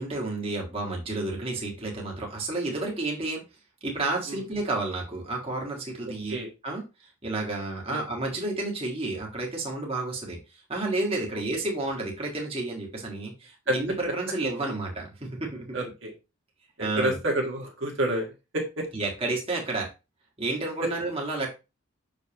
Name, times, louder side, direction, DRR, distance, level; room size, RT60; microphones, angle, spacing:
voice 1, 0.0-3.4 3.8-15.8 16.8-17.2 18.9-19.9 20.4-21.5, right 2 dB, 25° right, -1 dB, 1.5 m, -31 dB
voice 2, 15.7-16.1 17.0-18.3 18.5-18.6, right 1 dB, 60° right, 0 dB, 1.5 m, -27 dB
6.3 x 5.2 x 2.9 m, 0.28 s
head